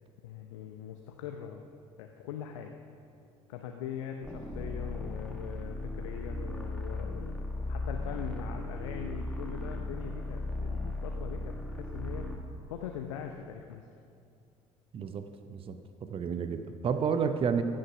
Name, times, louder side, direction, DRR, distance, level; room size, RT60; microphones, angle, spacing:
voice 1, 0.2-1.6 2.0-2.8 3.5-12.3 12.7-13.8, left 8 dB, 70° left, 4 dB, 0.7 m, -42 dB
sound 1, 4.2-12.5, left 2 dB, 5° left, 1.6 m, -36 dB
voice 2, 14.9-17.6, right 6 dB, 35° right, 9 dB, 0.7 m, -31 dB
15.0 x 6.6 x 6.0 m, 2.4 s
figure-of-eight pair, 55°, 17 cm